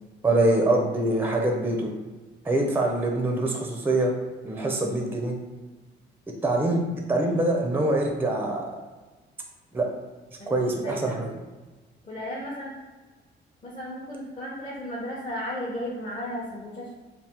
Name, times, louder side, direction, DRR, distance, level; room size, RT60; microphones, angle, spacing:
voice 1, 0.2-1.9 2.4-4.1 4.4-5.3 6.4-6.8 7.1-8.6 9.7-9.9 10.5-11.3, right 2 dB, 10° right, 1 dB, 0.5 m, -24 dB
voice 2, 10.4-11.2 12.0-12.7 13.6-16.9, equal, 30° left, -6 dB, 0.7 m, -35 dB
3.3 x 2.0 x 2.8 m, 1.2 s
cardioid pair, 90°, 20 cm